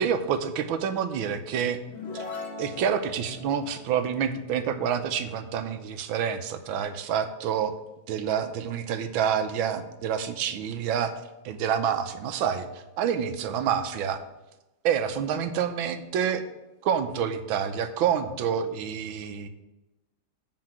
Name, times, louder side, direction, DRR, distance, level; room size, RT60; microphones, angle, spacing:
voice 1, 0.0-1.8 2.1-2.3 2.6-7.7 8.1-11.1 11.4-12.7 13.0-14.2 14.8-16.4 16.8-19.5, right 8 dB, 85° right, 9 dB, 1.6 m, -27 dB
sound 1, 1.8-5.5, left 4 dB, 85° left, 2.3 m, -41 dB
7.8 x 5.0 x 7.3 m, 1.0 s
omnidirectional pair, 2.1 m